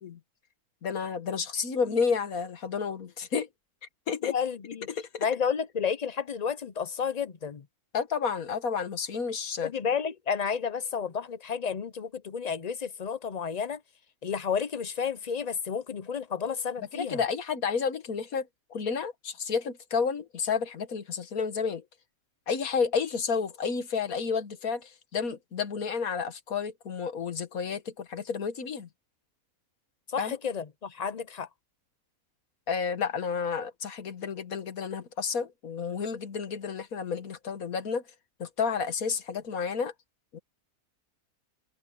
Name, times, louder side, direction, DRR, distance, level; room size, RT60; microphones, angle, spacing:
voice 1, 0.8-3.5 4.1-4.4 5.0-5.3 7.9-9.7 16.9-21.8 22.5-28.9 30.2-30.4 32.7-38.0 38.4-39.9 40.3-40.4, left 6 dB, 75° left, 1.8 m, -31 dB
voice 2, 4.2-4.9 5.2-7.7 9.6-13.8 14.2-17.2 30.1-31.5, left 6 dB, 50° left, 0.5 m, -31 dB
omnidirectional pair, 1.5 m